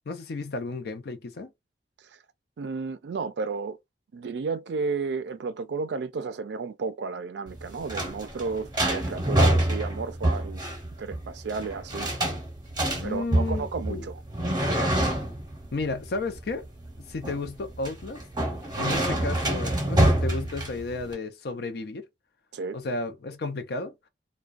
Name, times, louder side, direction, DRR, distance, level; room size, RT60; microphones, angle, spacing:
voice 1, 0.1-1.5 12.9-14.0 15.7-16.6 17.0-18.2 18.8-22.1 22.7-23.9, left 3 dB, 65° left, 0.5 m, -33 dB
voice 2, 2.6-3.8 4.1-10.6 11.0-12.1 13.0-14.2 22.5-22.8, right 4 dB, 70° right, 0.4 m, -32 dB
sound 1, 7.5-21.1, right 1 dB, 25° right, 0.8 m, -27 dB
2.3 x 2.2 x 2.4 m
head